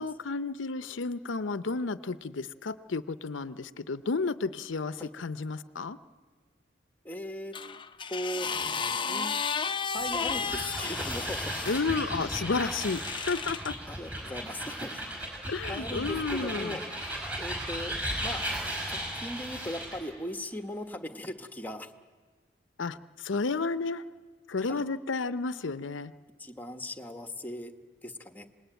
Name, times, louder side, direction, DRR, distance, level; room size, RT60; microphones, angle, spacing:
voice 1, 0.0-6.0 11.7-13.0 13.3-13.7 15.5-16.8 22.8-24.0 24.5-26.1, left 4 dB, 85° left, 14 dB, 0.7 m, -32 dB
voice 2, 7.0-7.5 8.1-8.5 9.0-9.4 9.9-11.5 13.9-15.0 15.4-16.8 17.4-18.4 18.9-21.9 24.7-24.8 26.4-27.7 28.0-28.5, left 1 dB, 10° left, 7 dB, 1.3 m, -38 dB
sound 1, 7.5-11.8 12.7-13.7 14.6-14.8, left 5 dB, 25° left, 0.7 m, -33 dB
sound 2, 10.0-20.1, right 1 dB, 5° right, 5.8 m, -36 dB
26.5 x 20.5 x 9.1 m, 1.4 s
head